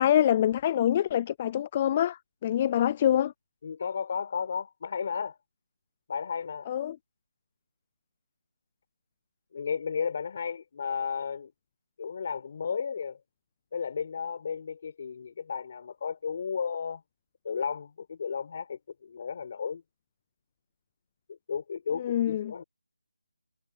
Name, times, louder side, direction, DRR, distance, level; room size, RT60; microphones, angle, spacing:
voice 1, 0.0-3.3 6.7-7.0 22.0-22.5, left 11 dB, 20° left, 0.3 m, -25 dB
voice 2, 3.6-5.4 6.1-6.7 9.5-11.5 12.0-13.2 13.7-17.0 17.4-19.8 21.3-22.6, left 6 dB, 40° left, 4.5 m, -33 dB
figure-of-eight pair, 170°, 0 cm